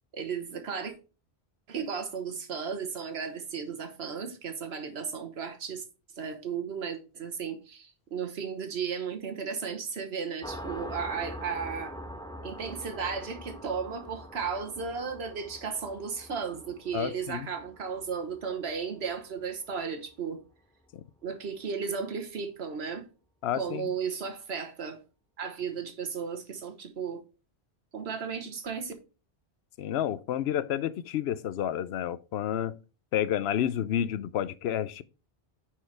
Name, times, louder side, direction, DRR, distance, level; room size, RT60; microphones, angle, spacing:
voice 1, 0.1-0.9 1.7-5.8 6.2-11.9 12.4-20.4 21.2-23.1 23.5-25.0 25.4-27.2 27.9-28.9, right 6 dB, 80° right, 1.4 m, -35 dB
sound 1, 10.4-19.7, equal, 5° left, 0.5 m, -44 dB
voice 2, 16.9-17.5 20.9-21.0 23.4-23.9 29.8-32.8 33.1-35.0, left 10 dB, 80° left, 0.8 m, -30 dB
9.8 x 4.6 x 3.3 m
omnidirectional pair, 1.1 m